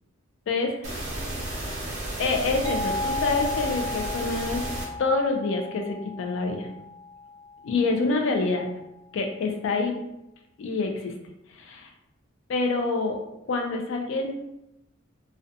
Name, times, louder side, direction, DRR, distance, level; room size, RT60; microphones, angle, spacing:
voice 1, 0.5-1.0 2.2-4.7 5.0-6.7 7.6-8.7 9.1-9.9 10.6-11.1 11.6-11.9 12.5-13.2 13.5-14.4, left 3 dB, 60° left, 3 dB, 0.3 m, -26 dB
sound 1, 0.8-4.8, right 1 dB, 35° right, 0.5 m, -33 dB
sound 2, 2.6-8.1, left 2 dB, 15° left, 0.5 m, -35 dB
2.4 x 2.1 x 2.6 m, 0.87 s
head